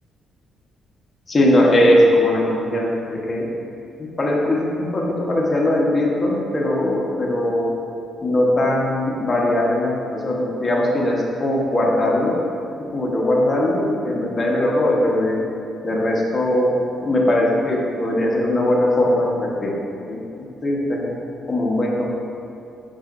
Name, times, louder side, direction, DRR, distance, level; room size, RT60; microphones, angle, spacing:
voice 1, 1.3-3.5 4.2-7.7 8.2-12.4 12.9-15.4 15.8-19.7 20.1-20.2 20.6-21.1 21.5-22.1, left 1 dB, 30° left, -3 dB, 1.1 m, -20 dB
6.3 x 6.1 x 2.6 m, 2.6 s
cardioid pair, 90°, 0 cm